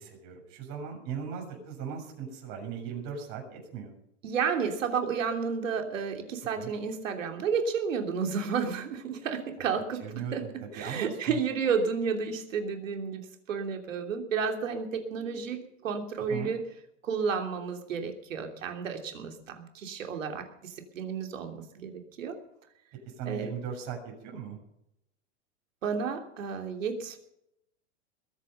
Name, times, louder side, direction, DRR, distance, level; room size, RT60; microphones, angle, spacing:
voice 1, 0.0-3.9 6.5-6.7 9.6-9.7 10.0-11.4 11.7-11.8 16.2-16.5 23.1-24.6, right 7 dB, 45° right, 1 dB, 7.2 m, -38 dB
voice 2, 4.2-16.6 17.0-22.4 23.3-23.5 25.8-27.2, right 6 dB, 85° right, 4 dB, 3.2 m, -32 dB
21.5 x 9.2 x 5.7 m, 0.78 s
hypercardioid pair, 125°, 38 cm